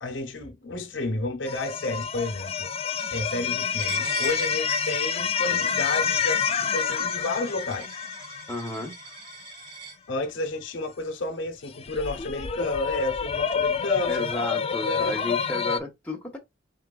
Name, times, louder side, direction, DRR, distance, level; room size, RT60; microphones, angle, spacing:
voice 1, 0.0-2.7 3.1-8.0 10.1-14.3 14.9-15.2, left 2 dB, 70° left, 0.9 m, -31 dB
sound 1, 1.5-9.3 11.8-15.8, left 7 dB, 30° left, 0.4 m, -28 dB
Coin (dropping), 3.8-10.0, right 4 dB, 80° right, 2.3 m, -42 dB
voice 2, 8.5-8.9 14.1-16.4, left 2 dB, 5° left, 1.2 m, -32 dB
4.6 x 3.6 x 2.3 m
head